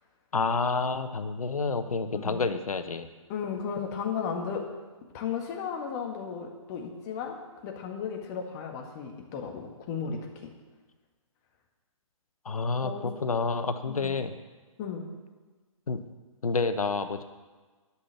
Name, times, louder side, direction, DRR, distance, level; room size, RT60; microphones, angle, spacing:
voice 1, 0.3-3.1 12.4-12.9 13.2-14.3 15.9-16.0 16.4-17.2, left 4 dB, 85° left, 9 dB, 1.1 m, -29 dB
voice 2, 2.1-2.4 3.3-4.6 5.1-7.4 7.6-10.5 12.8-13.1 13.9-14.2 14.8-15.0, left 6 dB, 30° left, 2 dB, 1.8 m, -35 dB
11.5 x 5.8 x 8.3 m, 1.3 s
hypercardioid pair, 145°, 18 cm